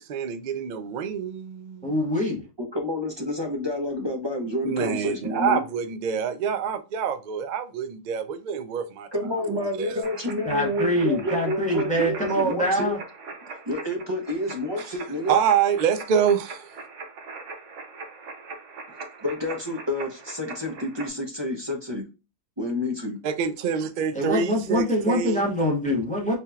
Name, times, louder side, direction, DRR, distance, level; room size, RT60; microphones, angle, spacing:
voice 1, 0.0-1.9 4.6-9.1 9.4-10.0 15.3-16.7 23.2-25.5, right 7 dB, 80° right, 0.4 m, -26 dB
voice 2, 1.8-2.5 10.4-13.0 24.1-26.4, equal, 5° left, 1.1 m, -24 dB
voice 3, 2.6-5.6 9.1-13.0 13.5-15.4 19.2-22.1 22.6-23.2, left 1 dB, 25° right, 0.6 m, -29 dB
sound 1, 10.0-21.1, right 4 dB, 60° right, 1.1 m, -41 dB
4.4 x 3.4 x 2.3 m
omnidirectional pair, 1.5 m